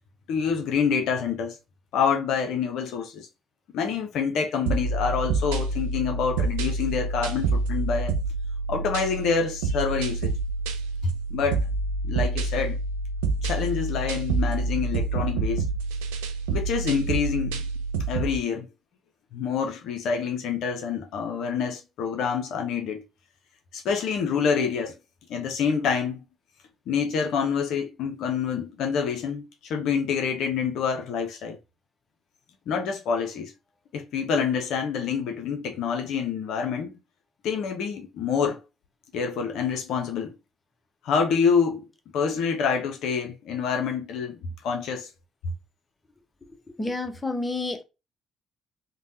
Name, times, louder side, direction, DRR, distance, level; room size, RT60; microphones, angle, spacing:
voice 1, 0.3-1.6 1.9-3.3 3.7-8.2 8.7-10.3 11.3-11.6 12.0-12.8 13.4-15.6 16.5-17.7 18.1-18.7 19.3-23.1 23.7-24.9 25.3-26.2 26.9-31.6 32.7-33.5 33.9-36.9 37.4-38.6 39.1-40.4 41.0-41.8 42.1-45.1, left 6 dB, 65° left, 0.5 m, -27 dB
sound 1, 4.7-18.4, right 3 dB, 80° right, 0.3 m, -27 dB
voice 2, 46.8-47.8, left 2 dB, 20° left, 0.6 m, -29 dB
3.3 x 2.0 x 2.6 m
hypercardioid pair, 50°, 0 cm